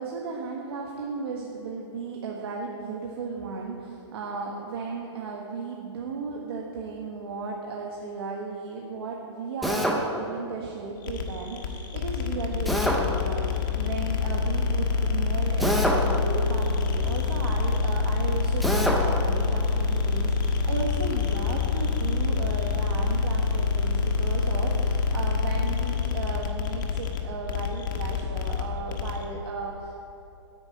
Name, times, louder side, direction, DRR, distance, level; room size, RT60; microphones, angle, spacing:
voice 1, 0.0-30.0, right 4 dB, 55° right, -1 dB, 1.5 m, -35 dB
Drill, 9.6-10.0 12.6-13.0 15.6-16.0 18.6-19.0, equal, ahead, 0.6 m, -24 dB
sound 1, 11.0-29.2, left 5 dB, 45° left, 1.3 m, -26 dB
9.7 x 9.0 x 8.9 m, 2.8 s
hypercardioid pair, 180°, 15 cm